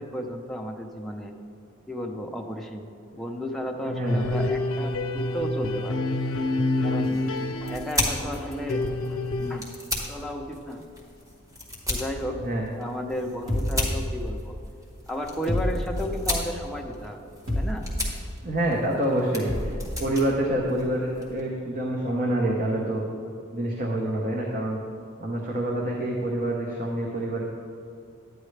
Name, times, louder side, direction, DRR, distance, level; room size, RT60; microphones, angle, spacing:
voice 1, 0.0-1.3 1.9-6.0 6.8-7.2 7.6-9.7 10.1-10.8 11.9-12.4 12.8-14.6 15.1-17.9, equal, ahead, 1 dB, 0.6 m, -33 dB
voice 2, 3.8-4.3 12.4-12.6 18.4-23.0 23.5-24.8 25.2-27.4, right 1 dB, 40° right, -2 dB, 0.9 m, -27 dB
sound 1, 4.1-9.6, left 2 dB, 75° left, 0.6 m, -28 dB
sound 2, 6.9-21.4, left 1 dB, 15° right, 1.3 m, -35 dB
sound 3, 13.5-14.6 15.5-16.4 17.5-18.2 19.5-20.0, equal, 70° right, 2.1 m, -29 dB
11.0 x 9.3 x 3.3 m, 2.4 s
head